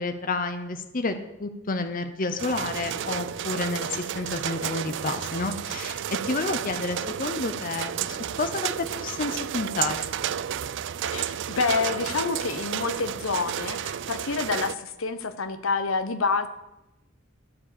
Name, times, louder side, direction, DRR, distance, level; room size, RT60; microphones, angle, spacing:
voice 1, 0.0-10.2, left 3 dB, 45° left, 9 dB, 0.7 m, -30 dB
sound 1, 2.4-14.8, right 9 dB, 65° right, 0.4 m, -32 dB
voice 2, 11.0-16.5, left 4 dB, 85° left, 11 dB, 1.0 m, -28 dB
13.5 x 4.9 x 8.3 m, 0.94 s
head